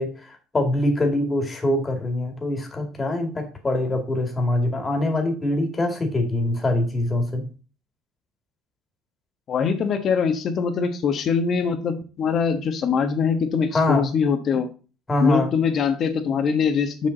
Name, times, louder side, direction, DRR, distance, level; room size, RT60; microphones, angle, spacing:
voice 1, 0.0-7.5 13.7-14.1 15.1-15.5, left 1 dB, 15° left, 4 dB, 2.1 m, -24 dB
voice 2, 9.5-14.7 15.2-17.1, left 6 dB, 40° left, 8 dB, 1.2 m, -23 dB
6.4 x 6.1 x 3.9 m, 0.35 s
cardioid pair, 135°, 0 cm